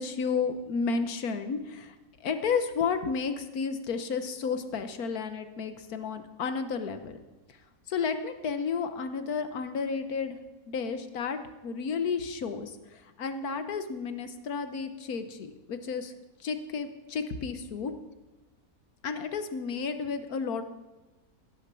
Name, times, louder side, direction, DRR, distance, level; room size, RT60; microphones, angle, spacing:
voice 1, 0.0-1.9 2.2-7.2 7.9-10.4 10.7-16.1 16.4-17.9 19.0-20.6, left 5 dB, 80° left, 9 dB, 1.6 m, -32 dB
16.5 x 7.3 x 6.9 m, 1.1 s
omnidirectional pair, 1.5 m